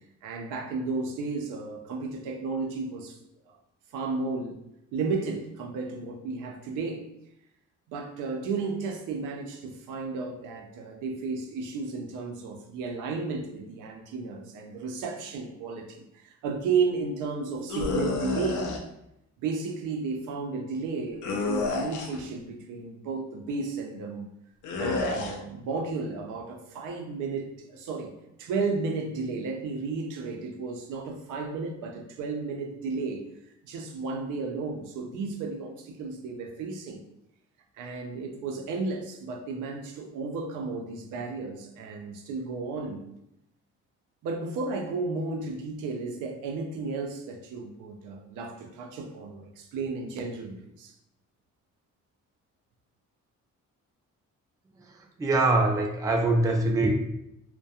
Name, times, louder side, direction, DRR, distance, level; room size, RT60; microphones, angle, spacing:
voice 1, 0.2-3.2 3.5-3.6 3.9-4.6 4.9-7.0 7.9-18.6 19.4-24.3 24.8-28.1 28.4-33.2 33.6-37.0 37.8-43.0 44.2-50.9, right 4 dB, 85° right, 3 dB, 0.5 m, -33 dB
sound 1, 17.7-18.8 21.2-22.3 24.6-25.4, left 4 dB, 80° left, 0.5 m, -29 dB
voice 2, 54.8-56.9, right 2 dB, 10° right, 2 dB, 0.3 m, -24 dB
2.3 x 2.2 x 2.7 m, 0.82 s
cardioid pair, 90°, 30 cm